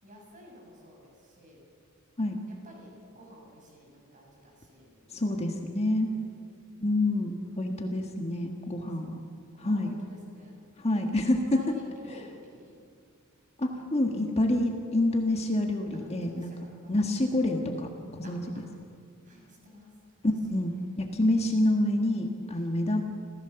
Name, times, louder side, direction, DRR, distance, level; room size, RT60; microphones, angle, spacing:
voice 1, 0.0-1.6 2.5-4.9 6.2-6.3 7.5-7.6 8.6-8.7 9.2-10.6 11.5-12.8 15.9-17.0 18.2-18.6 19.2-20.3 22.5-22.7, equal, 40° right, -1 dB, 6.8 m, -52 dB
voice 2, 5.1-6.1 6.8-9.2 9.6-10.0 10.8-11.6 13.6-16.5 16.9-18.6 20.2-23.0, left 1 dB, 30° left, 3 dB, 1.6 m, -27 dB
28.0 x 15.5 x 7.0 m, 2.3 s
head